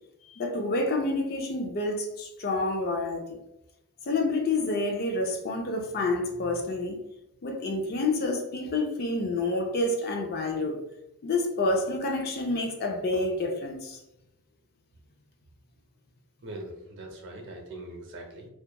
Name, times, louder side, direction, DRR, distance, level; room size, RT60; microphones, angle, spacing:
voice 1, 0.3-3.4 4.1-7.0 7.4-10.8 11.2-14.0, left 2 dB, 45° left, 0.4 m, -28 dB
voice 2, 16.4-18.5, right 1 dB, 55° right, 0.6 m, -41 dB
2.8 x 2.2 x 2.2 m
head